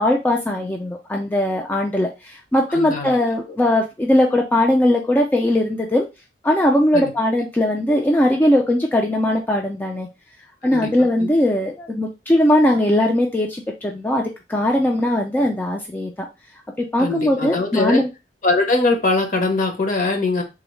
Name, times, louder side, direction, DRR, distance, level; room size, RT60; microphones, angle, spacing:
voice 1, 0.0-6.1 6.4-10.1 10.6-14.2 14.5-16.1 16.9-18.1, left 1 dB, 10° left, 0 dB, 0.3 m, -19 dB
voice 2, 2.7-3.1 3.5-3.6 6.9-7.1 10.6-11.3 17.0-18.0 18.4-20.4, left 3 dB, 50° left, 3 dB, 0.9 m, -22 dB
3.6 x 2.0 x 3.1 m, 0.26 s
head